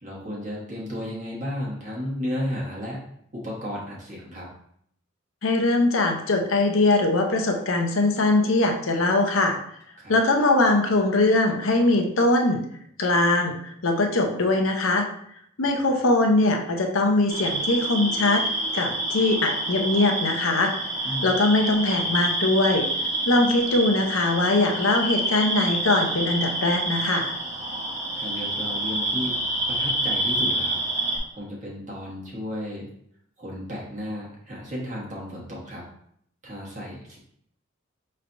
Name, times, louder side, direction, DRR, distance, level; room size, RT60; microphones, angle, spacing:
voice 1, 0.0-3.0 3.3-4.5 10.0-10.1 21.0-21.3 28.1-29.4 29.7-30.8 31.3-32.9 33.4-35.8 36.4-37.2, equal, 35° right, -5 dB, 1.0 m, -33 dB
voice 2, 5.4-9.6 10.1-12.6 13.0-13.5 13.8-15.1 15.6-18.4 18.7-20.7 21.0-22.9 23.3-27.3, left 2 dB, 75° left, 3 dB, 0.7 m, -21 dB
sound 1, 17.3-31.2, right 1 dB, 15° right, 0.9 m, -28 dB
5.6 x 3.2 x 2.5 m, 0.68 s
head